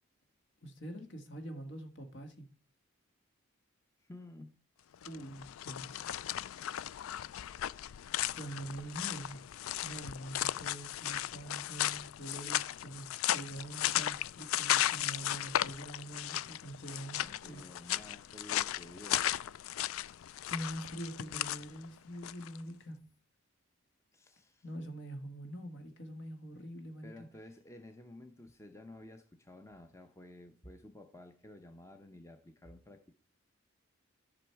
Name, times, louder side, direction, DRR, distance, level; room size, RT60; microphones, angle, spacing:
voice 1, 0.6-2.4 5.0-6.1 8.3-9.4 9.8-13.1 13.3-17.6 20.5-23.0 24.6-27.1, right 1 dB, 60° left, 1.7 m, -44 dB
voice 2, 4.0-4.6 17.4-19.3 24.1-24.6 27.0-33.1, left 1 dB, 15° left, 0.7 m, -52 dB
sound 1, 4.9-22.6, left 12 dB, 80° left, 0.3 m, -36 dB
12.0 x 6.2 x 4.6 m
head